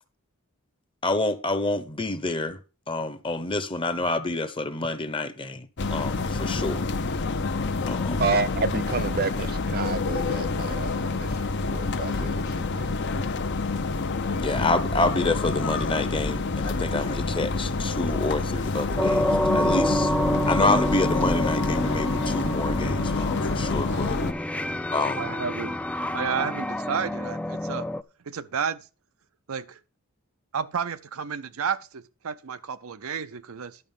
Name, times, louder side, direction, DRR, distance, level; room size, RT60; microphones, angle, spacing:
voice 1, 1.0-2.6 2.9-6.8 7.8-8.2 14.4-20.1 20.5-24.2 24.9-25.3, left 2 dB, 25° left, 0.9 m, -28 dB
sound 1, 5.8-24.3, left 3 dB, 55° left, 0.8 m, -28 dB
voice 2, 8.2-12.9, right 4 dB, 45° right, 0.8 m, -30 dB
sound 2, 19.0-28.0, left 1 dB, 5° left, 0.4 m, -27 dB
voice 3, 25.2-25.8 26.1-27.9 28.3-28.8 29.5-29.8 30.5-33.8, right 6 dB, 75° right, 0.6 m, -31 dB
11.0 x 6.2 x 5.5 m
head